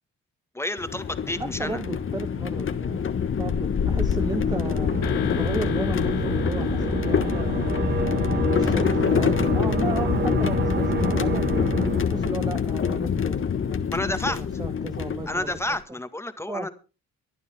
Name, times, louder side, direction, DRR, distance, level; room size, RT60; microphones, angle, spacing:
voice 1, 0.5-1.8 13.9-14.4 15.3-16.7, left 1 dB, 10° left, 10 dB, 1.7 m, -30 dB
sound 1, 0.8-15.8, left 7 dB, 45° left, 1.3 m, -25 dB
voice 2, 1.4-4.9 5.3-7.7 8.2-11.5 12.0-13.4 13.7-13.9 14.2-15.6 15.9-16.0 16.5-16.7, right 3 dB, 15° right, 9 dB, 0.8 m, -35 dB
sound 2, 4.1-12.6, right 4 dB, 35° right, 1.7 m, -29 dB
sound 3, 5.0-9.9, left 11 dB, 85° left, 1.9 m, -39 dB
24.0 x 9.4 x 3.6 m, 0.34 s
cardioid pair, 90°, 30 cm